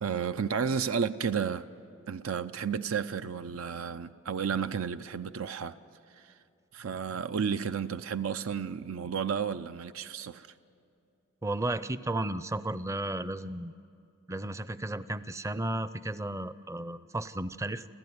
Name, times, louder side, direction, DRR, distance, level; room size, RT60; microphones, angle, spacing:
voice 1, 0.0-1.7 2.1-5.7 6.2-6.3 6.7-10.5, right 6 dB, 90° right, 0.5 m, -32 dB
voice 2, 11.4-13.7 14.3-17.8, right 1 dB, 15° right, 0.5 m, -34 dB
28.5 x 14.5 x 9.5 m
head